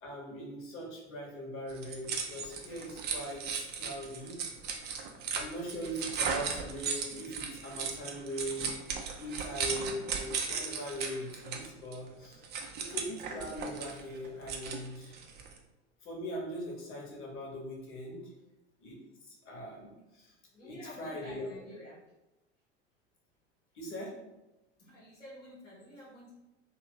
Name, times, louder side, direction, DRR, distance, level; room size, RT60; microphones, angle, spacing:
voice 1, 0.0-4.4 5.3-8.7 9.2-12.4 12.7-15.1 16.0-18.2 18.8-19.0 19.4-19.9 20.6-21.5 23.7-24.1, equal, 35° left, -1 dB, 1.2 m, -40 dB
sound 1, 1.7-15.6, right 6 dB, 30° right, 0.5 m, -37 dB
voice 2, 20.5-22.0 24.8-26.3, left 1 dB, 90° left, -7 dB, 1.1 m, -50 dB
2.9 x 2.6 x 3.6 m, 0.99 s
figure-of-eight pair, 80°, 36 cm